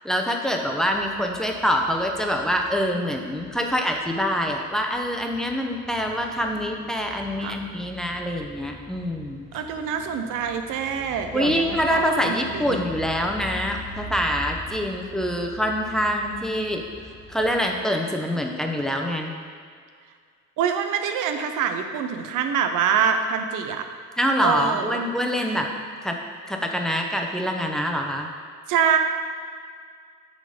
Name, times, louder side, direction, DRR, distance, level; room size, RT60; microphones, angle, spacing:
voice 1, 0.0-9.5 11.3-16.8 17.3-19.3 24.2-25.7 26.0-26.2 26.5-28.3, equal, ahead, 2 dB, 0.8 m, -25 dB
sound 1, 0.9-17.8, left 1 dB, 40° left, 1.3 m, -43 dB
voice 2, 9.5-12.8 20.6-23.9 24.4-25.0 25.4-25.5 28.7-29.0, right 7 dB, 90° right, 7 dB, 0.7 m, -25 dB
9.0 x 4.0 x 5.1 m, 2.1 s
cardioid pair, 90°, 30 cm